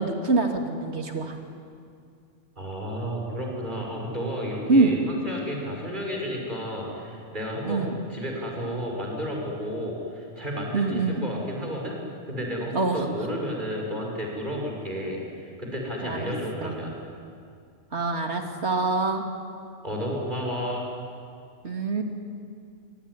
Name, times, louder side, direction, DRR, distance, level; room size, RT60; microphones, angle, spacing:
voice 1, 0.0-1.4 4.7-4.9 7.6-7.9 10.7-11.2 12.7-13.1 16.0-16.3 16.6-16.7 17.9-19.2 21.6-22.0, right 3 dB, 60° right, 3 dB, 2.9 m, -24 dB
voice 2, 2.6-12.0 12.3-16.9 19.8-20.9, equal, 40° right, -1 dB, 6.1 m, -32 dB
25.0 x 24.0 x 9.9 m, 2.4 s
omnidirectional pair, 1.3 m